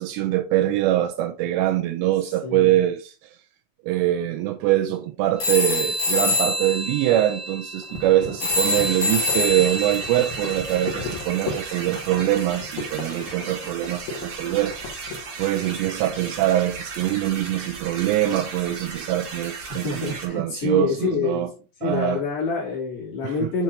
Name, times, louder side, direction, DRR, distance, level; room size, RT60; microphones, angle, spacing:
voice 1, 0.0-3.1 3.8-14.8 15.4-21.5 21.8-22.2 23.2-23.5, right 13 dB, 85° right, 2.7 m, -23 dB
voice 2, 2.4-2.8 19.8-21.5 21.8-23.6, left 4 dB, 60° left, 4.8 m, -26 dB
sound 1, 5.4-11.5, left 2 dB, 40° left, 1.8 m, -26 dB
sound 2, 7.8-15.3, left 5 dB, 80° left, 4.2 m, -36 dB
sound 3, 8.4-20.3, right 4 dB, 45° right, 1.6 m, -36 dB
9.3 x 4.5 x 2.8 m
omnidirectional pair, 5.2 m